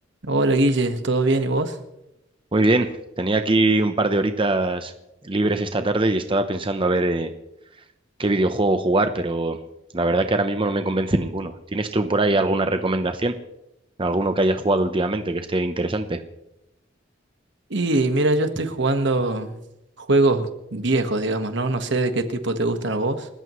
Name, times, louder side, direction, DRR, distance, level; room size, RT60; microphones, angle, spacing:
voice 1, 0.2-1.8 17.7-19.6 20.0-23.3, right 2 dB, 65° right, 8 dB, 1.5 m, -22 dB
voice 2, 2.5-2.9 3.2-4.9 5.2-7.3 8.2-9.6 9.9-13.3 14.0-16.2, right 2 dB, 25° right, 7 dB, 0.8 m, -22 dB
29.0 x 14.0 x 3.2 m, 0.88 s
head